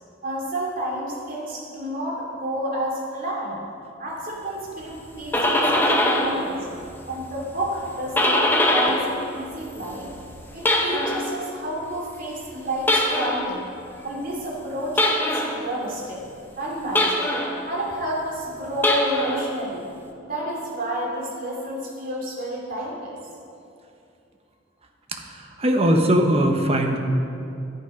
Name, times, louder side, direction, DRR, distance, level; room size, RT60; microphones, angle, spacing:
voice 1, 0.2-3.6 4.0-6.6 7.1-10.1 10.5-13.7 14.0-16.2 16.6-17.3 17.7-19.9 20.2-23.2, right 1 dB, 50° right, -4 dB, 2.9 m, -30 dB
sound 1, 5.0-6.4 6.8-9.2 9.5-11.3 12.8-13.5 15.0-15.6 17.0-17.6 18.7-19.5, left 1 dB, 10° left, 1.0 m, -22 dB
voice 2, 25.1-27.0, right 1 dB, 35° right, 3 dB, 1.1 m, -20 dB
11.5 x 10.5 x 5.1 m, 2.6 s
head